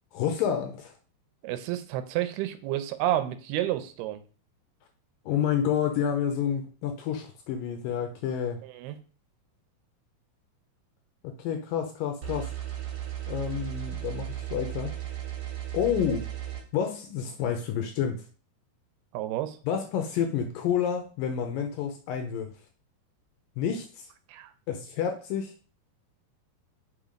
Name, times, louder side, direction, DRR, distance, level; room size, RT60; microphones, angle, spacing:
voice 1, 0.1-0.9 5.3-8.6 11.2-12.5 13.3-14.9 15.7-16.3 16.7-18.2 19.7-22.5 23.6-24.1 24.7-25.5, left 8 dB, 80° left, 5 dB, 2.2 m, -29 dB
voice 2, 1.4-4.2 8.6-9.0 19.1-19.6 24.3-24.5, right 13 dB, 80° right, 11 dB, 2.6 m, -30 dB
sound 1, 12.2-16.6, right 12 dB, 50° right, 3.2 m, -35 dB
5.6 x 5.5 x 5.1 m, 0.38 s
omnidirectional pair, 4.6 m